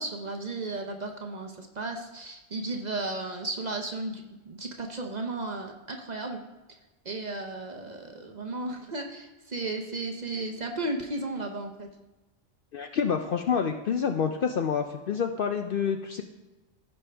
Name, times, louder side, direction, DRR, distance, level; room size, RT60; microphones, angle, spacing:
voice 1, 0.0-6.4 7.0-11.9, right 2 dB, 40° right, 3 dB, 0.8 m, -34 dB
voice 2, 12.7-16.2, left 7 dB, 60° left, 6 dB, 0.6 m, -28 dB
15.5 x 5.3 x 3.4 m, 1.1 s
omnidirectional pair, 1.3 m